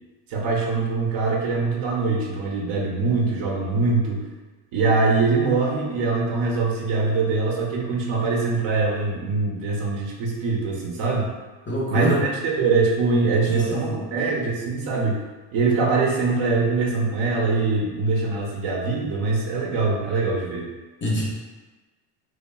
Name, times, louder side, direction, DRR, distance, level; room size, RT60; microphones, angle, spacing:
voice 1, 0.3-4.2 4.7-11.3 11.9-15.2 15.5-20.7, right 3 dB, 60° right, -2 dB, 0.8 m, -23 dB
voice 2, 11.7-12.2 13.5-13.9 21.0-21.2, equal, 25° left, -5 dB, 0.6 m, -25 dB
3.0 x 2.2 x 2.2 m, 1.2 s
supercardioid pair, 95°, 49 cm